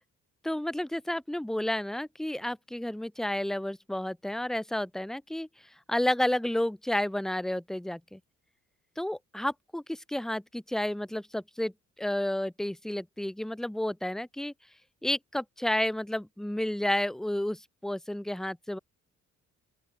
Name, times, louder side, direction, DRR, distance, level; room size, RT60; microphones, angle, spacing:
voice 1, 0.4-5.5 5.9-8.2 9.0-11.7 12.0-14.5 15.0-18.8, left 1 dB, ahead, 0.7 m, -31 dB
open air
cardioid pair, 90°, 30 cm